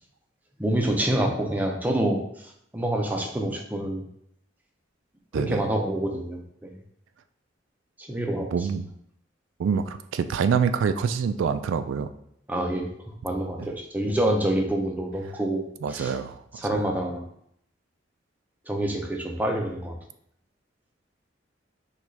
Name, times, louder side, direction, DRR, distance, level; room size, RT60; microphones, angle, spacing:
voice 1, 0.6-2.2 2.7-4.0 5.3-6.8 8.0-8.5 12.5-12.9 13.2-15.6 15.9-16.1 16.6-17.3 18.7-20.0, right 1 dB, 10° right, 1 dB, 0.5 m, -27 dB
voice 2, 8.5-8.9 9.6-12.1 13.6-13.7 15.8-16.4 16.7-16.8, right 6 dB, 90° right, 11 dB, 0.3 m, -26 dB
6.0 x 2.4 x 3.2 m, 0.71 s
head